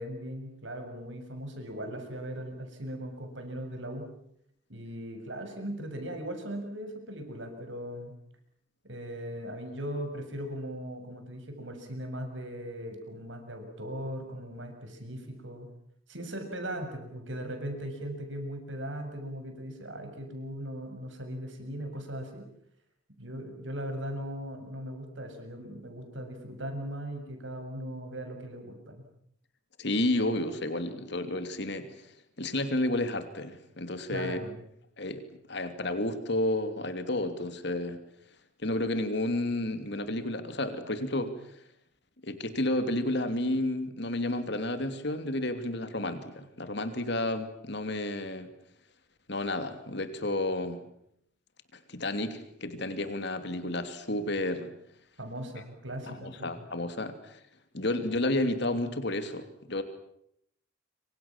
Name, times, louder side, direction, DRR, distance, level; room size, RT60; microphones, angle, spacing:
voice 1, 0.0-4.1 4.7-8.1 8.8-15.7 16.1-22.4 23.2-29.1 34.1-34.6 55.2-56.6, equal, 70° right, 5 dB, 7.1 m, -39 dB
voice 2, 29.8-31.9 32.4-34.4 35.0-35.2 35.5-38.0 38.6-41.4 42.2-48.5 49.3-50.8 51.7-54.7 56.1-57.4 57.7-59.8, left 1 dB, 60° left, 9 dB, 2.9 m, -31 dB
27.0 x 25.0 x 7.4 m, 0.72 s
head